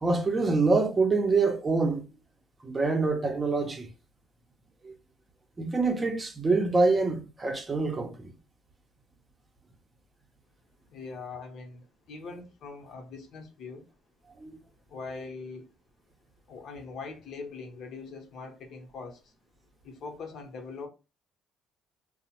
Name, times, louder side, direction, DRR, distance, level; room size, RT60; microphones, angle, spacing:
voice 1, 0.0-2.0 2.6-3.9 4.8-4.9 5.6-8.3 14.4-14.6, right 3 dB, 25° right, 0.6 m, -25 dB
voice 2, 10.9-13.8 14.9-15.7 16.5-19.3 19.8-20.9, left 4 dB, 60° left, 0.8 m, -42 dB
2.9 x 2.0 x 2.8 m
cardioid pair, 90°, 0 cm